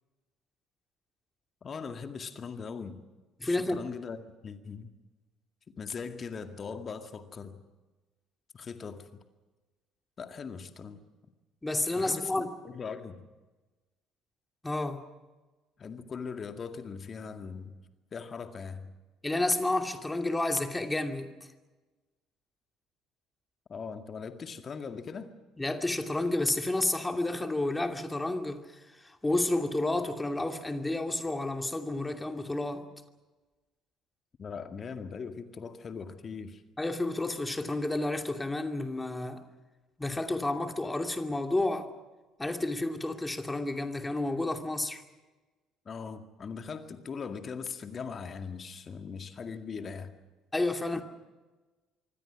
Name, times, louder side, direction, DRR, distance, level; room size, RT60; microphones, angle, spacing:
voice 1, 1.6-3.0 3.4-4.2 4.4-4.9 5.8-7.6 8.5-9.1 10.2-11.0 11.9-13.2 15.8-17.8 18.1-18.9 23.7-25.3 34.4-36.6 45.9-50.1 50.9-51.0, left 5 dB, 35° left, 2.1 m, -40 dB
voice 2, 3.4-3.8 11.6-12.5 14.6-15.0 19.2-21.3 25.6-32.9 36.8-39.4 40.0-41.9 42.4-45.0 50.5-51.0, left 2 dB, 15° left, 2.7 m, -30 dB
26.0 x 24.0 x 6.2 m
figure-of-eight pair, 55°, 0 cm